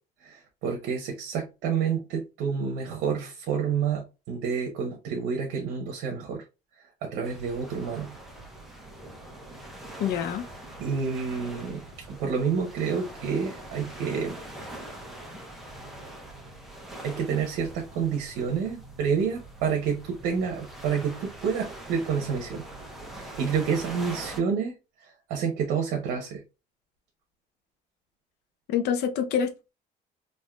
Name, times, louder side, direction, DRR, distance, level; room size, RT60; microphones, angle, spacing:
voice 1, 0.2-6.4 7.0-8.1 10.8-14.4 17.0-22.7 23.1-24.7 25.3-26.4, right 6 dB, 90° right, 0.8 m, -29 dB
sound 1, 7.2-24.4, right 1 dB, ahead, 0.8 m, -43 dB
voice 2, 10.0-10.5 28.7-29.7, left 8 dB, 75° left, 0.6 m, -27 dB
3.5 x 2.6 x 2.2 m
cardioid pair, 110°, 17 cm